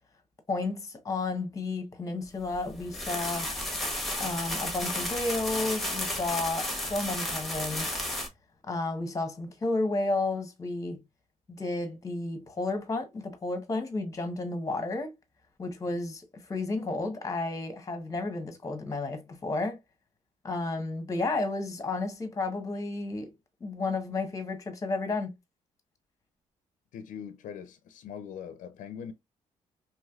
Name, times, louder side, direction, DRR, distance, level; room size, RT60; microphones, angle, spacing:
voice 1, 0.5-3.5 4.2-8.0 8.7-11.0 11.5-15.1 15.6-19.8 20.4-23.3 23.6-25.3, left 2 dB, 25° left, 0.9 m, -32 dB
sound 1, 2.5-8.3, left 1 dB, ahead, 1.2 m, -33 dB
voice 2, 26.9-29.1, left 8 dB, 75° left, 0.4 m, -41 dB
3.1 x 2.9 x 2.3 m
cardioid pair, 90°, 13 cm